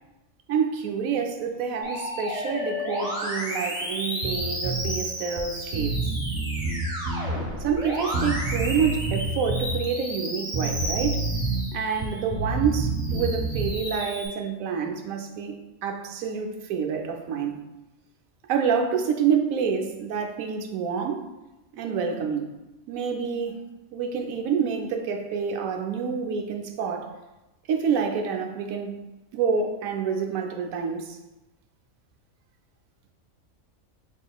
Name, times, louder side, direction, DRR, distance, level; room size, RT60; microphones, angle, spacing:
voice 1, 0.5-6.0 7.6-11.2 11.7-17.6 18.5-21.3 21.7-22.5 22.9-23.6 23.9-27.1 27.7-29.0 29.3-31.2, right 6 dB, 85° right, 3 dB, 1.0 m, -27 dB
Musical instrument, 1.8-12.2 12.7-14.3, equal, 5° right, 0.9 m, -33 dB
Bass guitar, 4.2-4.9 5.4-5.5 5.7-7.3 8.1-9.7 10.5-11.6 11.9-13.8, right 3 dB, 60° right, 0.9 m, -28 dB
5.0 x 3.7 x 2.3 m, 0.99 s
omnidirectional pair, 1.4 m